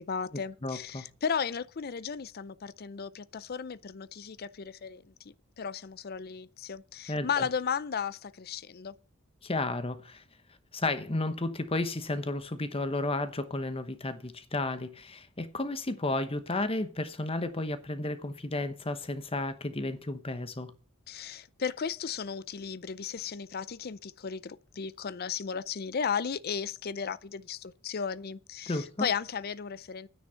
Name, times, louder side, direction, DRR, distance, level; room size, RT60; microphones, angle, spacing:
voice 1, 0.0-8.9 21.1-30.1, left 6 dB, 50° left, 0.5 m, -35 dB
voice 2, 0.6-1.0 7.1-7.3 9.4-10.2 10.7-20.7 28.7-29.1, left 2 dB, 25° left, 1.0 m, -32 dB
9.9 x 9.3 x 5.7 m
head